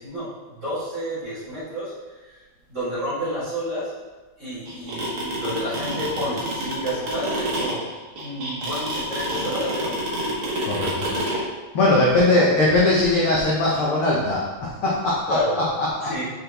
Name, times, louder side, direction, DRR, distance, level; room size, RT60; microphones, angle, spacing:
voice 1, 0.0-1.9 2.2-2.4 2.7-4.0 4.4-7.9 8.2-10.0 12.2-12.6 15.3-15.6 16.0-16.2, equal, 30° right, -11 dB, 1.5 m, -30 dB
sound 1, 4.7-11.4, right 1 dB, 50° right, 1.9 m, -28 dB
voice 2, 10.7-11.1 11.7-14.4 14.8-15.2 16.0-16.1, left 2 dB, 80° left, -5 dB, 1.2 m, -19 dB
6.4 x 6.0 x 3.4 m, 1.3 s
omnidirectional pair, 3.9 m